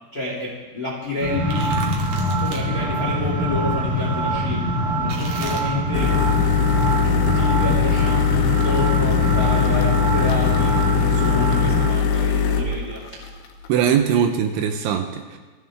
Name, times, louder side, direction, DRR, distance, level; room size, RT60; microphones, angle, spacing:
voice 1, 0.1-1.8 2.2-6.2 7.0-10.8 11.1-13.3, left 2 dB, 25° left, -3 dB, 2.0 m, -29 dB
sound 1, 1.2-11.9, equal, 25° right, 5.6 m, -23 dB
sound 2, 1.3-2.6 5.1-5.6, right 3 dB, 50° right, 2.0 m, -35 dB
sound 3, 5.9-14.2, left 7 dB, 75° left, 3.4 m, -20 dB
voice 2, 13.7-15.4, right 8 dB, 75° right, 5 dB, 3.0 m, -21 dB
21.0 x 15.5 x 3.6 m, 1.3 s
omnidirectional pair, 5.9 m